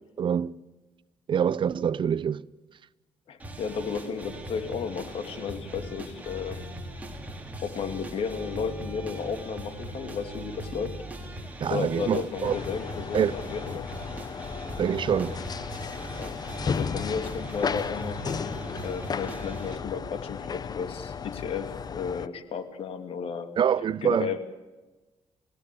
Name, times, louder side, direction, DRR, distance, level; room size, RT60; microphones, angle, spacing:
voice 1, 0.2-0.5 1.3-2.4 11.6-12.5 13.1-13.4 14.8-15.3 23.6-24.3, right 8 dB, 50° right, 0.7 m, -25 dB
voice 2, 3.3-6.7 7.6-11.0 11.7-13.9 16.2-16.4 16.7-23.5 24.0-24.4, left 6 dB, 65° left, 2.5 m, -33 dB
sound 1, 3.4-19.8, right 1 dB, 15° right, 4.9 m, -40 dB
sound 2, 12.4-22.3, left 6 dB, 40° left, 0.8 m, -34 dB
29.0 x 17.0 x 8.4 m
cardioid pair, 90°, 10 cm